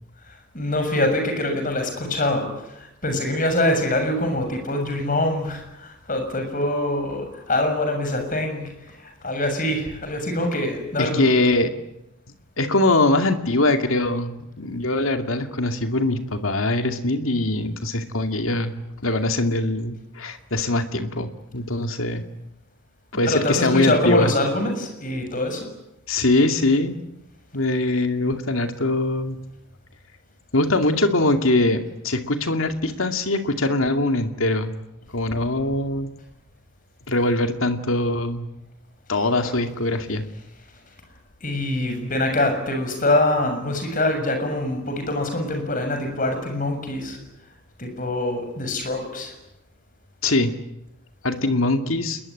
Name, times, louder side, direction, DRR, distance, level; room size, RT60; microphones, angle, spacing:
voice 1, 0.3-11.3 23.3-25.7 39.5-39.6 41.4-47.2 47.8-49.3, left 1 dB, 40° left, 5 dB, 6.7 m, -24 dB
voice 2, 11.0-11.7 12.6-18.7 19.0-22.2 23.1-24.3 26.1-27.0 27.5-29.4 30.5-34.7 35.1-36.1 37.1-38.5 39.1-40.2 50.2-50.5 51.2-52.2, left 2 dB, 75° left, 7 dB, 2.4 m, -22 dB
28.0 x 21.5 x 9.9 m, 0.89 s
head